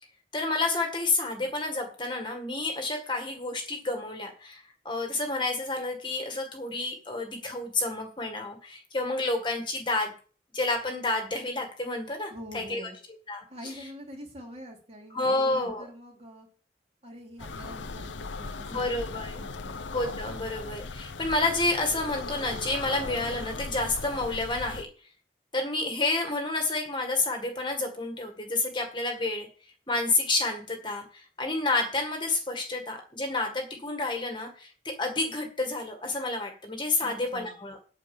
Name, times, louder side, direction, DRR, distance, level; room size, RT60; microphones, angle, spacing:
voice 1, 0.3-10.1 10.5-12.8 13.3-13.7 15.1-15.9 18.7-19.3 19.9-24.9 25.5-29.5 29.9-37.8, left 2 dB, 25° left, 4 dB, 1.8 m, -30 dB
voice 2, 12.3-13.0 13.5-16.5 17.0-19.0 19.4-19.8 37.0-37.6, equal, 35° right, 0 dB, 3.0 m, -45 dB
sound 1, 17.4-24.8, left 3 dB, 90° left, 0.8 m, -38 dB
8.8 x 6.4 x 7.0 m, 0.40 s
head